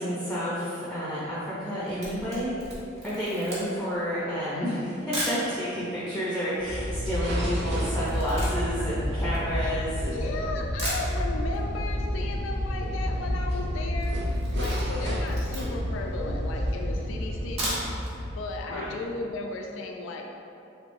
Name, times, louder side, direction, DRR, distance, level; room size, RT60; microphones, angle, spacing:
voice 1, 0.0-2.6 3.0-10.2 18.7-18.9, equal, 5° left, -9 dB, 0.5 m, -30 dB
Camera, 1.8-5.5 6.1-6.2 6.4-10.1 10.5-10.6 10.8-11.6 11.9-12.0 12.3-12.4 12.6-13.0 13.3-13.6 13.9-15.9 16.5-16.6 17.4-18.1 18.5-18.6 19.0-19.1, right 1 dB, 35° right, 1.0 m, -36 dB
sound 1, 6.6-18.8, equal, 60° right, 0.5 m, -30 dB
voice 2, 9.5-17.8 18.4-20.3, left 3 dB, 75° left, 2 dB, 0.4 m, -35 dB
3.4 x 3.2 x 2.6 m, 2.7 s
head